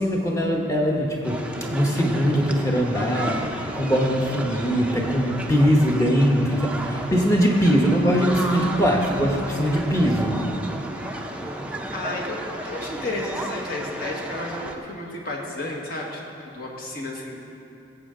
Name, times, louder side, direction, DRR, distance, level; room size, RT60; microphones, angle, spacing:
voice 1, 0.0-1.4 1.7-3.4 3.7-10.4, equal, 15° left, -1 dB, 1.1 m, -21 dB
sound 1, 1.2-14.7, right 1 dB, 5° right, 0.5 m, -33 dB
voice 2, 11.9-17.4, left 2 dB, 50° left, -1 dB, 1.5 m, -32 dB
17.5 x 8.0 x 3.8 m, 2.8 s
head